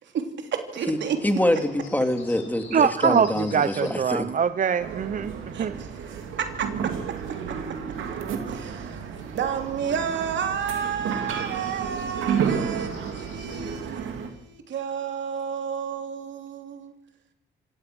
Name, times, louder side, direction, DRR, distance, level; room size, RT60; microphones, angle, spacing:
voice 1, 0.0-1.2 5.5-5.7 6.1-6.3 6.6-6.7 8.5-9.0 9.3-16.9, right 7 dB, 65° right, 3.4 m, -31 dB
Bird, 0.9-14.1, left 4 dB, 80° left, 6.6 m, -50 dB
voice 2, 1.2-4.3, left 1 dB, 10° left, 2.6 m, -25 dB
voice 3, 2.7-3.3 3.5-5.3 5.6-5.7, right 7 dB, 40° right, 0.8 m, -22 dB
sound 1, 4.8-14.3, right 7 dB, 85° right, 3.1 m, -31 dB
26.5 x 17.5 x 6.3 m
cardioid pair, 90°, 20 cm